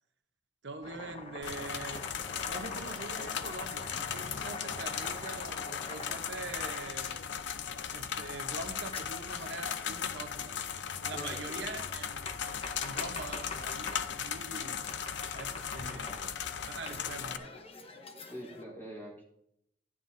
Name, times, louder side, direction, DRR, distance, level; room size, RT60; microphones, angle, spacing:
voice 1, 0.6-2.0 2.4-7.2 7.9-10.6 11.0-14.8 15.3-16.1 16.6-17.6, right 3 dB, 70° right, 6 dB, 0.9 m, -44 dB
Domestic sounds home sounds, 0.8-7.2 8.9-10.0 11.8-14.1 14.9-16.4 16.9-18.6, left 3 dB, 35° left, 0.9 m, -45 dB
sound 1, 1.4-17.4, left 8 dB, 75° left, 0.6 m, -37 dB
voice 2, 11.1-11.7 15.9-16.4 18.2-19.2, equal, 10° left, -4 dB, 3.4 m, -46 dB
13.0 x 9.3 x 2.6 m, 0.76 s
head